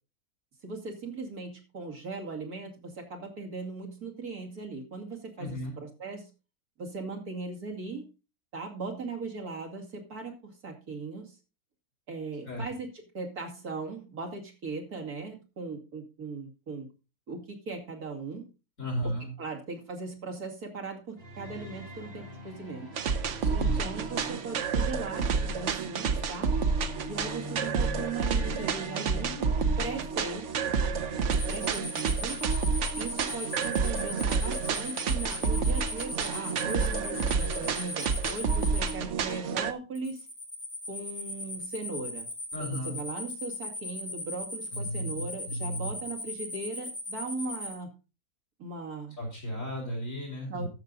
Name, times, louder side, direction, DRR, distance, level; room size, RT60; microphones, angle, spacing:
voice 1, 0.6-6.3 6.8-8.1 8.5-11.4 12.1-12.9 13.1-16.9 17.3-18.5 19.0-22.9 23.5-26.5 27.1-29.5 29.8-30.7 31.5-32.4 33.0-40.3 40.9-42.3 42.6-47.9 48.6-49.2 50.5-50.7, right 3 dB, 75° right, 1 dB, 3.0 m, -38 dB
voice 2, 5.4-5.7 12.4-12.6 18.8-19.3 23.4-23.8 42.5-43.0 44.7-45.9 49.2-50.7, equal, 60° left, -1 dB, 4.8 m, -34 dB
sound 1, 21.2-31.2, left 2 dB, 35° right, 3.2 m, -44 dB
sound 2, 22.9-39.7, right 5 dB, 60° right, 1.1 m, -29 dB
sound 3, 31.3-38.9 39.9-47.7, left 2 dB, 35° left, 2.6 m, -38 dB
13.5 x 6.8 x 4.0 m, 0.31 s
omnidirectional pair, 1.6 m